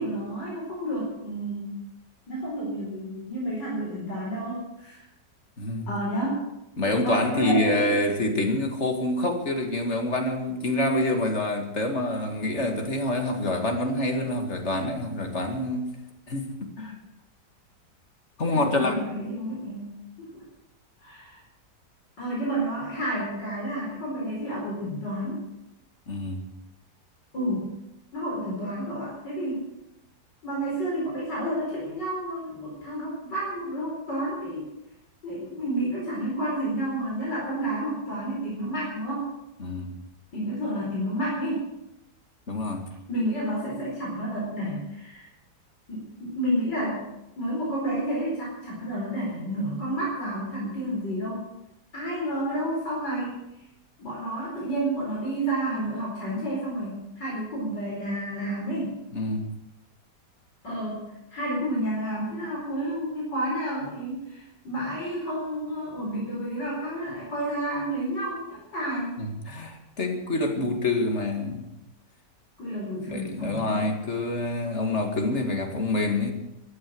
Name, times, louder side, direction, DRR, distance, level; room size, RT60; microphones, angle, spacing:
voice 1, 0.0-1.8 2.3-5.1 5.9-6.4 7.0-7.9 18.5-20.4 21.0-21.4 22.2-25.4 27.3-27.7 28.1-29.7 30.4-34.7 35.2-39.3 40.3-41.6 43.1-45.3 45.9-47.0 47.4-51.5 51.9-53.4 54.0-59.0 60.6-69.3 72.6-73.9, right 1 dB, 85° left, -5 dB, 5.4 m, -30 dB
voice 2, 5.6-5.9 6.8-15.9 16.3-17.0 18.4-19.1 26.1-26.5 39.6-39.9 42.5-42.8 59.1-59.5 69.2-71.7 73.1-76.3, left 1 dB, 40° left, 4 dB, 2.4 m, -27 dB
15.5 x 11.5 x 7.7 m, 0.90 s
omnidirectional pair, 1.8 m